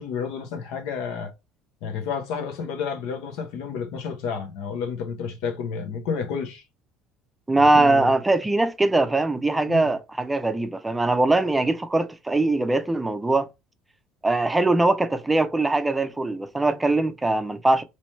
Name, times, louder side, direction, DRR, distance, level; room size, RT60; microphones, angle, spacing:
voice 1, 0.0-1.3 1.8-6.6 7.6-8.1 9.7-9.9, left 6 dB, 70° left, 0.8 m, -30 dB
voice 2, 7.5-13.5 14.2-17.8, right 2 dB, 15° right, 0.5 m, -21 dB
3.1 x 3.0 x 3.1 m
hypercardioid pair, 70°, 0 cm